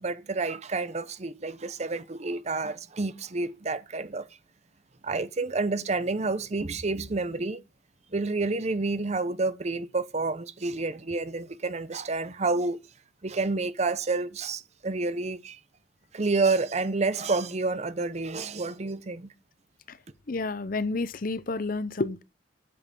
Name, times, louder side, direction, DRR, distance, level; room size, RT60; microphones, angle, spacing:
voice 1, 0.0-4.2 5.0-7.6 8.1-12.8 13.2-15.6 16.1-19.3, right 3 dB, 35° right, 0.7 m, -29 dB
voice 2, 20.3-22.2, left 3 dB, 50° left, 0.7 m, -30 dB
8.5 x 7.4 x 5.3 m
head